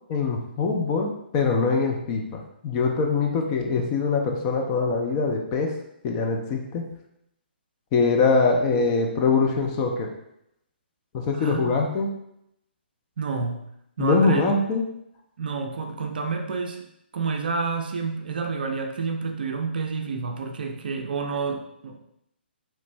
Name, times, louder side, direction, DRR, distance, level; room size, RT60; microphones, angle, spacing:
voice 1, 0.1-5.7 6.0-6.9 7.9-10.1 11.1-12.1 14.0-14.8, left 4 dB, 25° left, 2 dB, 0.4 m, -23 dB
voice 2, 11.3-11.7 13.2-13.6 14.0-14.4 15.4-16.8 17.1-22.0, right 4 dB, 55° right, 4 dB, 0.4 m, -29 dB
3.1 x 2.4 x 3.2 m, 0.78 s
figure-of-eight pair, 130°, 6 cm